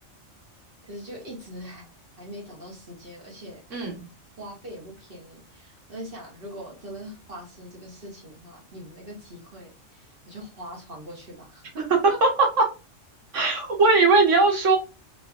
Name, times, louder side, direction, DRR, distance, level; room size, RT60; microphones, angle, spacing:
voice 1, 0.8-1.9 2.2-3.6 4.4-11.8, equal, 50° right, -2 dB, 1.7 m, -42 dB
voice 2, 3.7-4.0 12.2-12.3 12.6-12.7 13.3-14.8, right 3 dB, 80° right, 2 dB, 1.6 m, -19 dB
3.9 x 2.8 x 2.4 m, 0.30 s
omnidirectional pair, 1.3 m